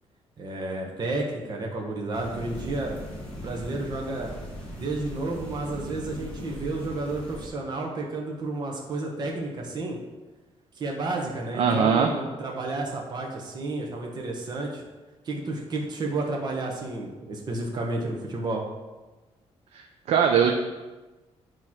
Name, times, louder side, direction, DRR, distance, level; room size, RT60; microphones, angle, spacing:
voice 1, 0.4-3.0 3.4-4.4 4.8-10.0 10.7-14.8 15.2-18.6, right 2 dB, 40° right, 0 dB, 1.0 m, -31 dB
sound 1, 2.1-7.5, equal, 10° left, 1.8 m, -39 dB
voice 2, 11.6-12.1 19.7-20.5, right 7 dB, 70° right, 4 dB, 0.6 m, -21 dB
8.5 x 3.1 x 5.9 m, 1.2 s
cardioid pair, 160°, 11 cm